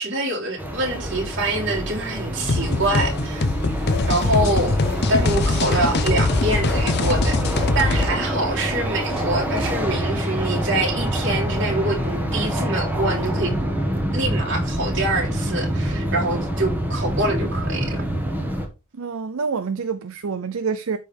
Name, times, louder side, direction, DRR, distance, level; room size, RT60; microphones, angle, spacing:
voice 1, 0.0-3.5 3.7-3.8 4.1-4.8 5.1-13.5 14.1-18.0, right 2 dB, 55° right, 3.4 m, -25 dB
sound 1, 0.6-18.7, equal, 10° right, 1.4 m, -26 dB
sound 2, 2.5-8.1, left 3 dB, 50° left, 0.6 m, -22 dB
sound 3, 5.3-6.1 7.5-8.1 9.0-9.7, right 2 dB, 25° right, 3.5 m, -45 dB
voice 2, 18.9-21.0, right 5 dB, 75° right, 0.6 m, -27 dB
13.0 x 4.3 x 3.4 m
head